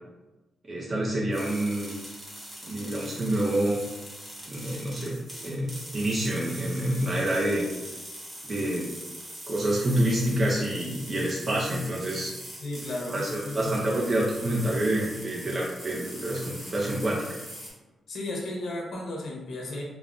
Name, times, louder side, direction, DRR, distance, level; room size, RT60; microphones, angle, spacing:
voice 1, 0.7-1.9 2.6-3.8 4.5-5.2 5.4-7.7 8.4-8.9 9.5-12.3 13.1-17.3, right 1 dB, 30° right, -4 dB, 0.4 m, -27 dB
sound 1, 1.3-17.7, equal, 15° right, 0.9 m, -42 dB
voice 2, 12.6-13.7 18.1-19.8, left 1 dB, 60° left, -2 dB, 0.7 m, -34 dB
3.5 x 2.0 x 2.4 m, 1.1 s
wide cardioid pair, 145°, 0 cm